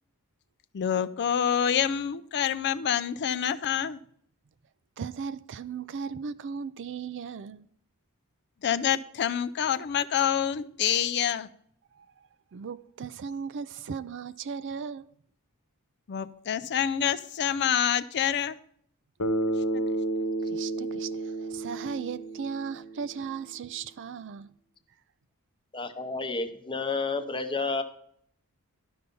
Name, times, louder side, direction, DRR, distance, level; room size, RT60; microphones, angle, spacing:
voice 1, 0.7-4.0 8.6-11.5 16.1-18.6 19.7-19.8, left 9 dB, 50° left, 0.4 m, -27 dB
voice 2, 5.0-7.7 11.9-12.1 12.5-15.1 20.4-24.5, right 6 dB, 55° right, 0.4 m, -37 dB
Bass guitar, 19.2-23.4, right 2 dB, 70° left, 1.0 m, -31 dB
voice 3, 25.7-27.8, left 3 dB, 20° left, 0.8 m, -30 dB
12.0 x 5.7 x 5.3 m
head